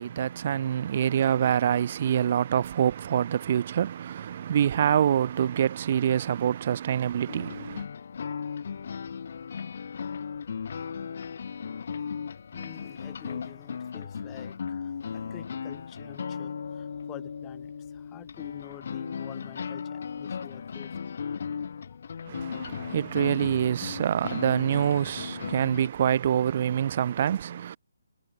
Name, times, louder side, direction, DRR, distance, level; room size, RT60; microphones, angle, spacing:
voice 1, 0.0-7.9 22.3-27.8, right 9 dB, 40° right, 0.4 m, -26 dB
sound 1, 7.3-25.9, left 6 dB, 55° left, 1.0 m, -36 dB
voice 2, 12.5-21.1 22.0-22.2 22.6-23.3, left 18 dB, 15° left, 4.3 m, -49 dB
figure-of-eight pair, 150°, 0 cm